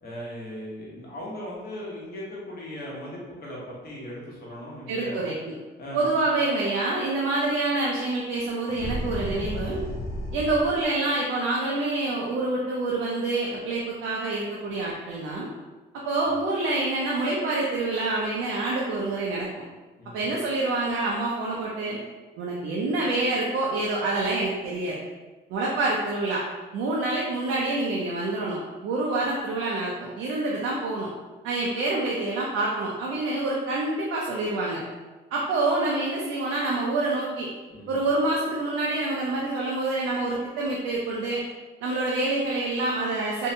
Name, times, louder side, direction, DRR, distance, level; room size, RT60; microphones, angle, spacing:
voice 1, 0.0-5.2 5.8-6.3 20.0-20.3 37.7-38.0, equal, 50° left, -4 dB, 0.9 m, -38 dB
voice 2, 4.9-5.3 5.9-9.8 10.3-15.5 16.0-19.5 20.1-22.0 22.4-25.0 25.5-26.4 26.7-31.1 31.4-34.8 35.3-37.5 37.9-41.4 41.8-43.5, right 2 dB, 90° right, -4 dB, 0.4 m, -27 dB
sound 1, 8.7-10.9, left 1 dB, 90° left, 0.4 m, -33 dB
2.6 x 2.1 x 2.7 m, 1.2 s
cardioid pair, 90°, 20 cm